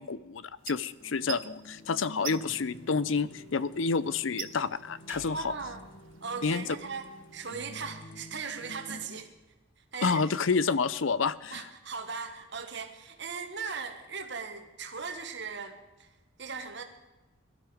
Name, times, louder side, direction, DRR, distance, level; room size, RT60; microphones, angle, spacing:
voice 1, 0.0-5.5 6.4-6.6 10.0-11.6, left 5 dB, 75° left, 18 dB, 0.6 m, -29 dB
sound 1, 0.6-7.9, right 11 dB, 75° right, 1.1 m, -47 dB
sound 2, 1.0-9.2, left 1 dB, 55° left, 1.0 m, -49 dB
sound 3, 5.1-7.3, right 2 dB, 10° right, 2.1 m, -52 dB
voice 2, 5.3-5.8 6.2-7.0 7.3-9.3 9.9-10.2 11.5-16.1 16.4-16.8, right 5 dB, 60° right, 6 dB, 1.6 m, -38 dB
18.0 x 12.0 x 5.1 m, 1.1 s
head